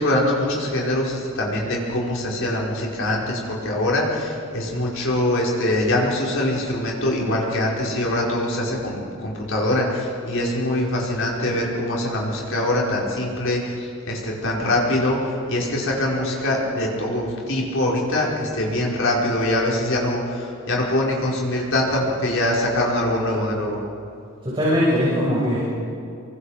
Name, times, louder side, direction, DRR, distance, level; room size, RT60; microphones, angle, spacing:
voice 1, 0.0-23.8, left 1 dB, 60° left, -3 dB, 5.5 m, -23 dB
voice 2, 24.4-25.6, equal, 25° right, -7 dB, 6.5 m, -20 dB
28.0 x 24.0 x 5.2 m, 2.6 s
head